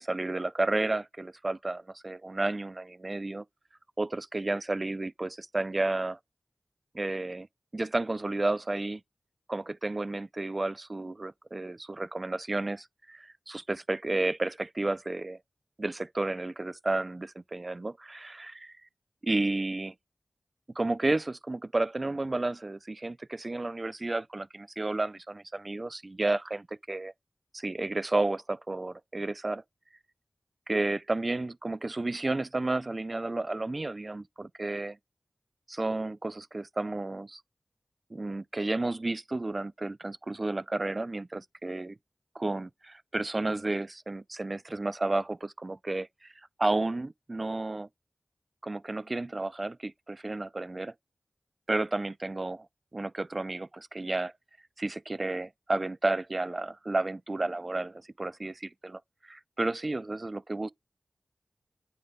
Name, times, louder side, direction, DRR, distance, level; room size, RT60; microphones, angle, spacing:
voice 1, 0.0-3.4 4.0-6.2 6.9-7.5 7.7-9.0 9.5-15.4 15.8-18.8 19.2-19.9 20.8-27.1 27.5-29.6 30.7-35.0 35.7-37.4 38.1-42.0 42.4-46.3 46.6-47.9 48.6-50.9 51.7-52.7 52.9-54.3 54.8-60.7, right 2 dB, 45° right, 0.4 m, -32 dB
9.3 x 3.7 x 3.6 m
wide cardioid pair, 50°, 0 cm